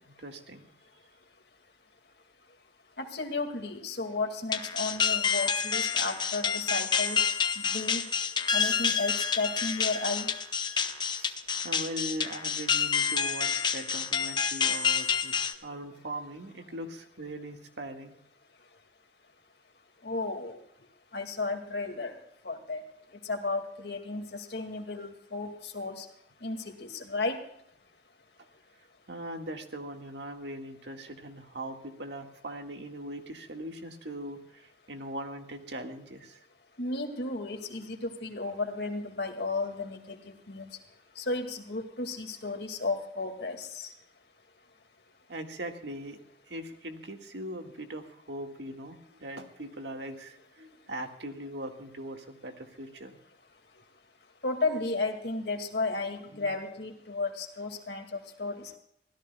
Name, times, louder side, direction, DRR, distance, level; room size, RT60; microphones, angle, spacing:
voice 1, 0.1-0.6 11.1-11.4 11.6-18.1 29.1-36.4 45.3-46.2 46.5-53.2, right 1 dB, 80° right, 4 dB, 1.8 m, -40 dB
voice 2, 3.0-7.3 7.6-8.1 8.5-10.3 20.0-20.6 21.1-22.2 22.4-22.8 23.2-26.1 26.4-27.4 36.8-40.7 41.2-43.9 54.4-58.7, left 3 dB, 65° left, 5 dB, 2.2 m, -33 dB
sound 1, 4.5-15.5, left 7 dB, 25° left, 0.8 m, -28 dB
25.0 x 16.5 x 2.3 m, 0.75 s
head